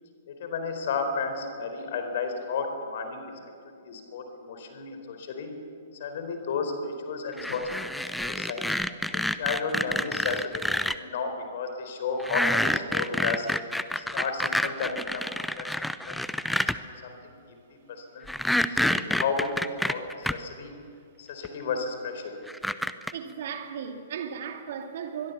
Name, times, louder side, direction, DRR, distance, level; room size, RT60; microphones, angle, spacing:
voice 1, 0.3-3.3 3.7-5.5 6.0-8.7 9.1-10.6 10.9-13.5 13.9-15.3 15.6-16.2 16.5-16.6 17.0-17.3 17.9-18.3 18.7-20.7 21.2-22.3, left 4 dB, 50° left, 6 dB, 4.4 m, -33 dB
sound 1, 7.4-10.9 12.2-16.8 18.3-20.3 21.4-21.5 22.5-23.1, left 1 dB, ahead, 0.7 m, -28 dB
voice 2, 23.1-25.3, right 7 dB, 50° right, 5 dB, 2.4 m, -36 dB
24.0 x 22.5 x 7.1 m, 2.4 s
figure-of-eight pair, 115°, 0 cm